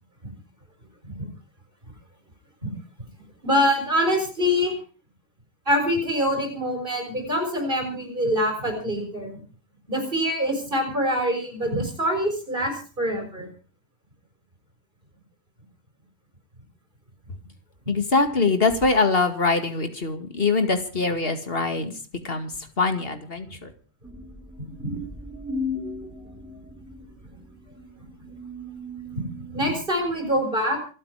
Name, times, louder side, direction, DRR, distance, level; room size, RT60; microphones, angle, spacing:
voice 1, 3.4-4.7 5.6-9.4 9.9-13.5 24.8-24.9 29.1-30.8, equal, 55° right, 2 dB, 6.6 m, -25 dB
voice 2, 17.9-21.9 22.2-22.5 22.8-23.7, left 3 dB, 65° left, 8 dB, 2.4 m, -23 dB
sound 1, 24.0-29.7, left 2 dB, 5° right, 4.5 m, -37 dB
27.0 x 9.0 x 4.9 m, 0.38 s
omnidirectional pair, 1.1 m